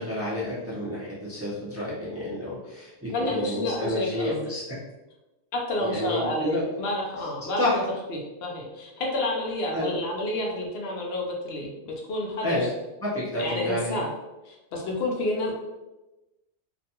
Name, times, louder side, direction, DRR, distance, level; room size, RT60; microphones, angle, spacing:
voice 1, 0.0-4.6 5.8-6.6 7.6-7.8 9.7-10.0 12.4-12.7 13.0-14.0, left 1 dB, 20° right, -8 dB, 0.4 m, -30 dB
voice 2, 3.1-4.5 5.5-7.8 8.1-12.7 13.4-14.1 14.5-15.6, left 1 dB, 70° left, -1 dB, 0.8 m, -29 dB
2.5 x 2.2 x 2.7 m, 1.0 s
omnidirectional pair, 1.1 m